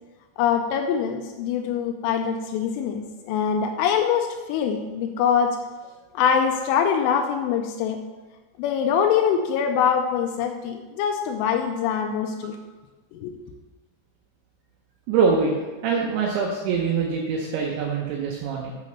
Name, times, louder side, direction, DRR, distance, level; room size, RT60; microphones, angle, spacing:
voice 1, 0.4-5.6 6.1-8.0 8.6-12.6 13.1-13.3, left 7 dB, 85° left, 4 dB, 3.1 m, -23 dB
voice 2, 15.1-15.5 15.8-18.7, right 5 dB, 75° right, -1 dB, 3.0 m, -24 dB
7.8 x 6.4 x 6.5 m, 1.2 s
omnidirectional pair, 5.6 m